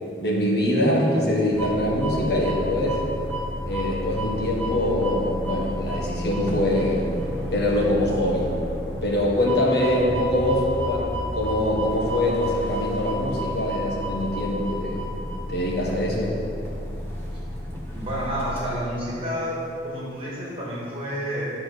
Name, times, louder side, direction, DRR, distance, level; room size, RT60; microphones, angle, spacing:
voice 1, 0.2-3.0 3.7-7.1 7.5-8.6 9.0-15.1 15.5-16.4, left 1 dB, 60° left, -3 dB, 1.7 m, -23 dB
sound 1, 1.5-19.0, equal, 15° left, 1.2 m, -31 dB
voice 2, 17.9-19.6 19.8-21.5, equal, 30° right, -6 dB, 1.9 m, -29 dB
9.1 x 4.8 x 6.5 m, 2.6 s
head